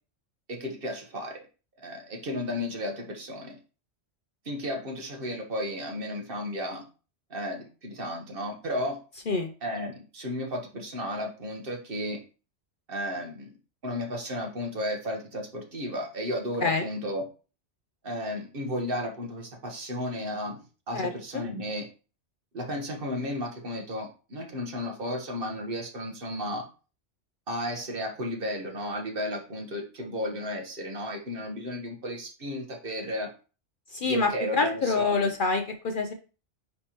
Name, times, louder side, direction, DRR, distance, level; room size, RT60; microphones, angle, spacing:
voice 1, 0.5-1.5 1.8-3.6 4.4-6.8 7.3-9.0 9.6-12.2 12.9-13.5 13.8-17.2 18.0-20.6 20.9-21.9 22.5-26.7 27.5-33.3 34.0-35.3, left 1 dB, 50° right, 2 dB, 1.3 m, -33 dB
voice 2, 33.9-36.1, left 4 dB, 55° left, 5 dB, 0.7 m, -26 dB
9.8 x 3.3 x 2.9 m, 0.35 s
omnidirectional pair, 1.2 m